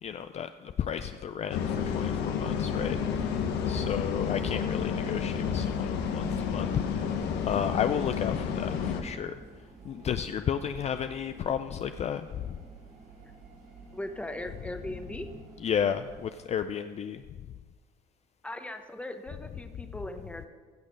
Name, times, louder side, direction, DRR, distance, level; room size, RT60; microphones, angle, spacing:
voice 1, 0.0-3.3 3.7-7.1 7.5-9.3 9.8-12.6 15.6-17.2, left 8 dB, 40° left, 9 dB, 0.4 m, -32 dB
sound 1, 1.5-9.0, left 7 dB, 85° left, 1.1 m, -30 dB
sound 2, 2.6-16.3, right 3 dB, 75° right, 4.0 m, -48 dB
voice 2, 13.9-15.3 18.4-20.5, left 1 dB, 5° left, 7 dB, 0.9 m, -39 dB
16.0 x 6.4 x 5.3 m, 1.4 s
cardioid pair, 110°, 17 cm